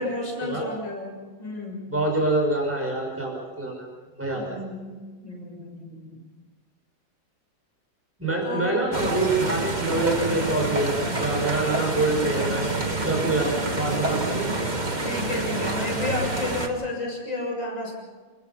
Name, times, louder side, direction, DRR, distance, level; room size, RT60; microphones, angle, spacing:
voice 1, 0.0-1.9 4.3-6.2 8.4-8.8 15.0-18.0, left 2 dB, 80° left, 0 dB, 7.6 m, -32 dB
voice 2, 1.9-3.9 4.2-4.4 8.2-12.7 13.0-14.5, right 2 dB, 5° right, -1 dB, 5.8 m, -25 dB
sound 1, 8.9-16.7, right 2 dB, 25° right, 2.0 m, -27 dB
29.0 x 20.5 x 5.8 m, 1.4 s
omnidirectional pair, 2.0 m